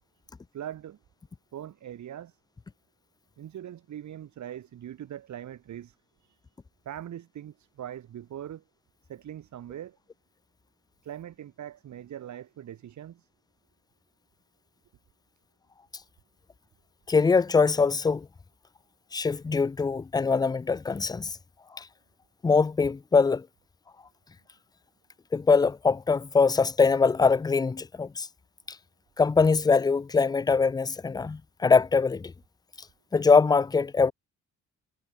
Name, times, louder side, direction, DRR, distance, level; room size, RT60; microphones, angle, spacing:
voice 1, 0.5-1.0 1.5-2.4 3.4-6.4 6.8-8.6 9.1-10.0 11.0-13.3, right 11 dB, 70° right, 7.0 m, -41 dB
voice 2, 17.1-18.3 19.1-21.4 21.7-21.9 22.4-23.5 25.3-28.3 29.2-32.3 33.1-34.1, left 4 dB, 15° left, 0.4 m, -23 dB
cardioid pair, 90°, 30 cm